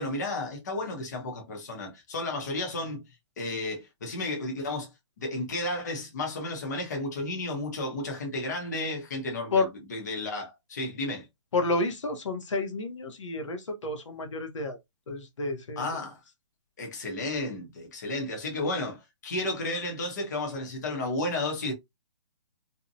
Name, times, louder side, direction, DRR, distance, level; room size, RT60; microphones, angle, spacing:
voice 1, 0.0-3.0 3.4-4.9 5.2-11.2 15.8-16.2 16.8-21.7, left 2 dB, 35° left, 0.7 m, -32 dB
voice 2, 11.5-14.8 15.1-16.0, left 3 dB, 70° left, 0.8 m, -30 dB
2.6 x 2.1 x 2.6 m
hypercardioid pair, 180°, 17 cm